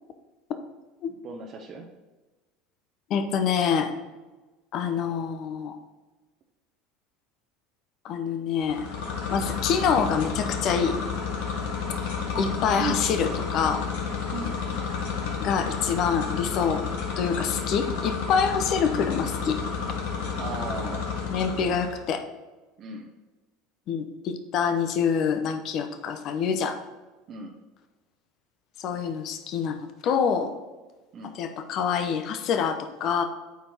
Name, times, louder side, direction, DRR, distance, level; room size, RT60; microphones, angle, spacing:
voice 1, 1.2-1.8 12.8-13.0 14.3-14.6 20.4-21.0 22.8-23.1 27.3-27.5 31.1-31.3, right 4 dB, 45° right, 1 dB, 1.0 m, -35 dB
voice 2, 3.1-3.9 4.7-5.8 8.0-8.9 9.3-11.0 12.4-13.9 15.4-16.8 17.2-19.6 21.3-22.2 23.9-26.8 28.8-30.5 31.4-33.2, left 6 dB, 50° left, 8 dB, 0.9 m, -26 dB
sound 1, 8.6-22.0, left 5 dB, 70° left, 1.4 m, -31 dB
8.5 x 4.5 x 4.4 m, 1.2 s
hypercardioid pair, 75°, 0 cm